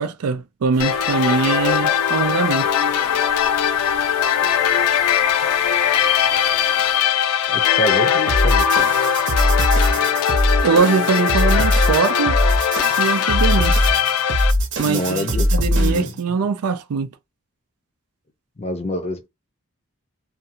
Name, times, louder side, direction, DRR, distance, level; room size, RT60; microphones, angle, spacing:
voice 1, 0.0-2.7 10.6-12.4 13.0-13.8 14.8-17.1, right 5 dB, 85° right, 0.4 m, -21 dB
sound 1, 0.7-7.0, right 1 dB, 15° right, 0.8 m, -41 dB
sound 2, 0.8-14.5, left 8 dB, 90° left, 0.4 m, -20 dB
voice 2, 7.5-8.9 14.8-16.1 18.6-19.3, left 1 dB, 30° left, 0.5 m, -26 dB
sound 3, 8.3-16.2, equal, 50° right, 0.8 m, -20 dB
2.5 x 2.3 x 2.8 m
head